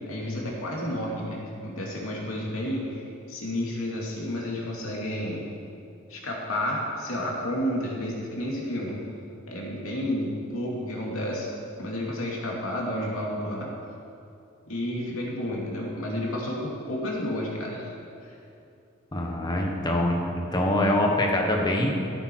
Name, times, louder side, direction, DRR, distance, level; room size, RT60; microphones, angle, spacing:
voice 1, 0.1-5.5 6.1-9.0 9.5-11.5 11.8-13.7 14.7-17.9 18.2-18.3, left 1 dB, 75° left, -3 dB, 2.6 m, -31 dB
voice 2, 19.1-21.9, left 1 dB, 20° left, 0 dB, 1.3 m, -24 dB
14.5 x 8.1 x 4.7 m, 2.6 s
head